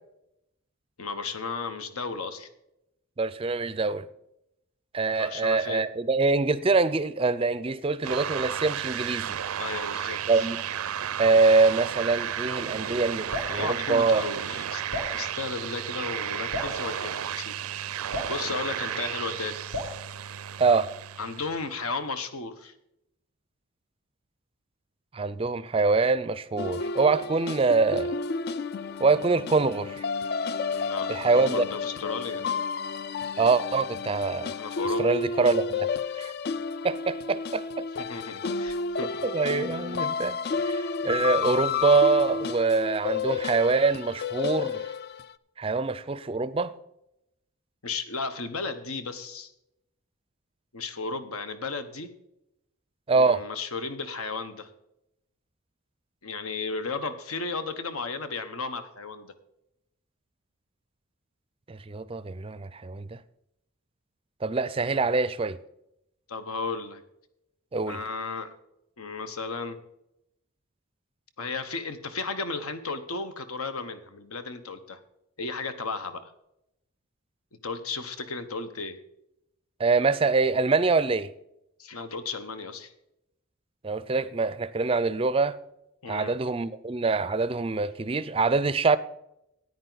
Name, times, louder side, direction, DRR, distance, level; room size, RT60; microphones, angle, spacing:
voice 1, 1.0-2.5 5.2-5.9 9.6-10.5 13.5-14.8 15.1-17.6 18.3-19.6 21.2-22.7 30.7-32.5 34.5-35.1 38.0-39.2 47.8-49.5 50.7-52.1 53.1-54.7 56.2-59.3 66.3-67.0 67.9-68.5 69.0-69.8 71.4-75.0 75.4-76.3 77.6-79.0 81.8-82.9 86.0-86.3, left 4 dB, 85° left, 1.0 m, -34 dB
voice 2, 3.2-4.0 4.9-9.4 10.3-10.6 11.2-14.3 20.6-20.9 25.1-28.1 29.0-30.0 31.1-31.7 33.4-34.5 35.0-35.9 36.2-36.3 36.8-37.9 39.2-44.8 45.6-46.7 53.1-53.4 61.7-63.2 64.4-65.6 67.7-68.0 79.8-81.3 83.8-85.6 86.1-89.0, right 4 dB, 25° right, 0.4 m, -24 dB
sound 1, 8.0-21.7, right 9 dB, 85° right, 0.5 m, -33 dB
Drip, 13.3-13.6 14.9-15.2 16.5-16.8 18.1-18.4 19.7-20.0, left 2 dB, 65° left, 2.0 m, -33 dB
sound 2, 26.6-45.3, left 5 dB, 45° left, 0.3 m, -31 dB
13.5 x 9.5 x 4.0 m
head